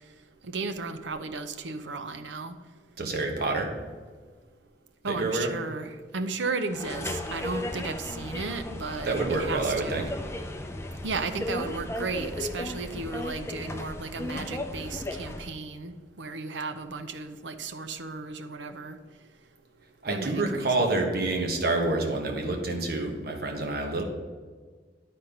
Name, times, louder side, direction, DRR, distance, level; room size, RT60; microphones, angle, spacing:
voice 1, 0.4-2.5 5.0-10.1 11.0-19.0 20.1-20.9, right 4 dB, 85° right, 9 dB, 0.6 m, -34 dB
voice 2, 3.0-3.7 5.1-5.5 9.0-10.0 20.0-24.0, right 2 dB, 60° right, 2 dB, 1.2 m, -27 dB
sound 1, 6.7-15.5, left 1 dB, 15° left, 0.5 m, -35 dB
9.8 x 4.3 x 5.2 m, 1.5 s
head